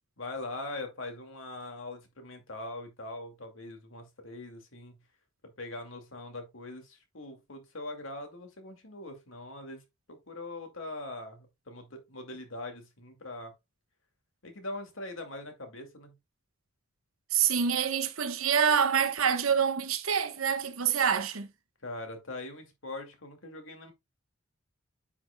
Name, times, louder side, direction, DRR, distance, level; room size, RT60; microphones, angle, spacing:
voice 1, 0.2-4.9 5.4-9.8 10.1-13.5 14.4-16.1 21.8-23.9, left 2 dB, 70° left, 2.3 m, -42 dB
voice 2, 17.3-21.5, right 7 dB, 90° right, 1.1 m, -26 dB
9.6 x 6.1 x 2.2 m
head